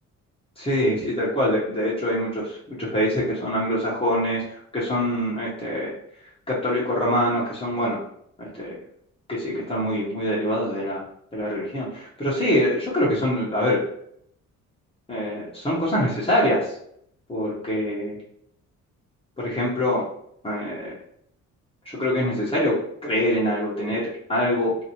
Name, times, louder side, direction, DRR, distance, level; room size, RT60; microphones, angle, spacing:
voice 1, 0.6-5.9 6.5-8.0 8.4-8.7 9.3-11.1 11.3-13.8 15.1-16.7 17.3-18.2 19.4-20.1 20.4-20.9 21.8-22.7 23.0-24.0 24.3-24.8, equal, 20° left, -7 dB, 1.0 m, -24 dB
2.8 x 2.6 x 2.8 m, 0.69 s
cardioid pair, 90°, 30 cm